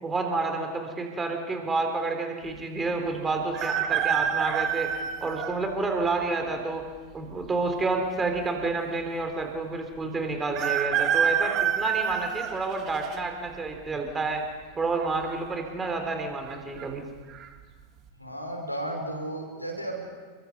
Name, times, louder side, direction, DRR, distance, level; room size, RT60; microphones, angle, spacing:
voice 1, 0.0-4.9 5.2-6.9 7.1-14.4 14.8-17.0, right 3 dB, 15° right, 4 dB, 3.7 m, -29 dB
sound 1, 3.5-5.6 6.2-6.3 7.4-8.1 8.4-8.5 8.6-8.7 10.5-13.2 13.7-14.1 15.2-15.6 15.8-15.9 16.5-16.8 17.3-17.5, right 8 dB, 35° right, 1.9 m, -27 dB
voice 2, 18.2-20.3, right 1 dB, 90° left, 2 dB, 5.1 m, -34 dB
29.5 x 22.5 x 5.5 m, 1.5 s
figure-of-eight pair, 90°, 0 cm